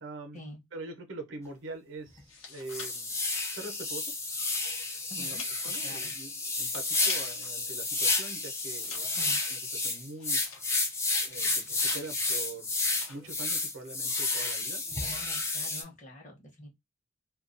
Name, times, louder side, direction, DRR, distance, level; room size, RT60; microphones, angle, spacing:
voice 1, 0.0-0.4 0.7-3.2 3.5-4.1 5.2-10.4 11.2-12.7 13.1-14.8, right 3 dB, 65° right, 0.7 m, -44 dB
sound 1, 1.5-1.6 2.1-2.2 2.7-15.8, left 3 dB, 15° left, 0.3 m, -31 dB
sound 2, 2.1-7.6 7.9-11.0 11.4-12.3 12.7-13.3 13.6-14.0, left 5 dB, 85° left, 0.8 m, -48 dB
voice 2, 5.1-6.1 9.2-9.4 14.6-16.7, left 1 dB, 35° left, 0.8 m, -47 dB
2.3 x 2.2 x 2.5 m
head